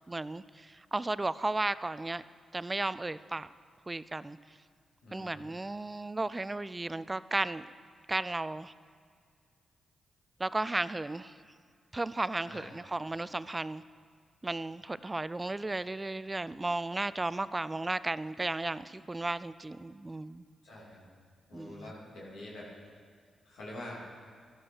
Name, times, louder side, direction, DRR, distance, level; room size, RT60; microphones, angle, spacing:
voice 1, 0.1-2.2 2.5-3.5 3.9-4.4 5.1-7.7 8.1-8.7 10.4-11.3 11.9-13.8 14.4-20.4 21.5-21.9, right 2 dB, 25° right, 16 dB, 0.4 m, -34 dB
voice 2, 5.0-5.5 12.5-12.8 20.6-21.0 21.5-22.7 23.4-24.0, left 1 dB, 85° left, -6 dB, 2.7 m, -45 dB
13.0 x 11.0 x 4.6 m, 2.1 s
supercardioid pair, 50°, 0 cm